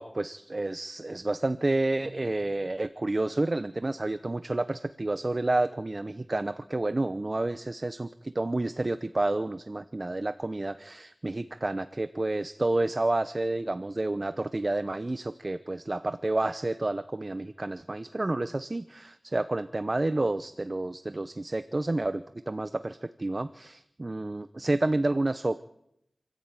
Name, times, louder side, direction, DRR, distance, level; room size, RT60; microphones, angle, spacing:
voice 1, 0.0-25.6, right 2 dB, 40° right, 12 dB, 0.8 m, -30 dB
27.5 x 14.5 x 9.1 m, 0.80 s
wide cardioid pair, 65°, 0 cm